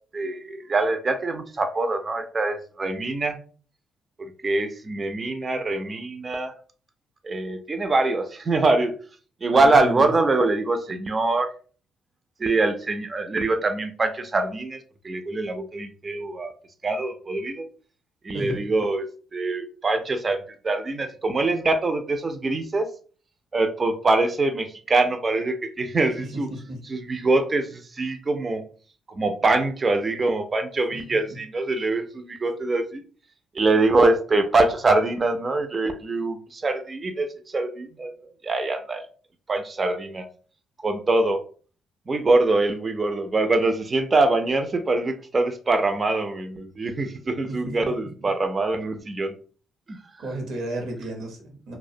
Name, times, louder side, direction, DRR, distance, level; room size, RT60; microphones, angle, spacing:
voice 1, 0.1-3.4 4.2-6.5 7.2-8.9 9.4-11.5 12.4-14.8 15.0-16.5 16.8-17.6 18.2-19.1 19.3-22.9 23.5-26.5 26.9-28.6 29.1-33.0 33.5-38.1 38.4-39.0 39.5-40.3 40.8-41.4 42.1-49.3 49.9-50.0, right 2 dB, 35° right, 6 dB, 0.3 m, -24 dB
voice 2, 9.5-10.1 18.3-18.7 26.2-26.8 47.5-48.3 50.2-51.8, right 1 dB, 80° right, 2 dB, 0.7 m, -33 dB
2.3 x 2.0 x 2.6 m, 0.41 s
cardioid pair, 90°, 0 cm